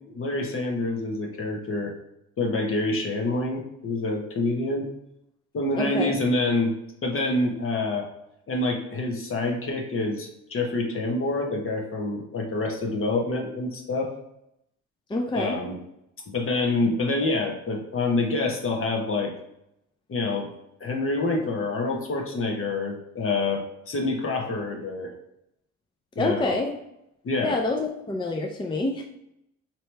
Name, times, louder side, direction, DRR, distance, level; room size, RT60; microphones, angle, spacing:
voice 1, 0.1-1.9 2.4-4.9 5.5-6.7 7.0-8.1 8.5-14.1 15.3-15.8 16.3-19.3 20.1-20.5 20.8-25.1 26.1-26.5 27.2-27.6, left 2 dB, 45° left, 2 dB, 1.1 m, -27 dB
voice 2, 5.8-6.1 15.1-15.6 26.2-26.7 27.4-29.0, left 2 dB, 15° left, 2 dB, 0.4 m, -27 dB
4.4 x 2.9 x 3.3 m, 0.81 s
cardioid pair, 90°, 30 cm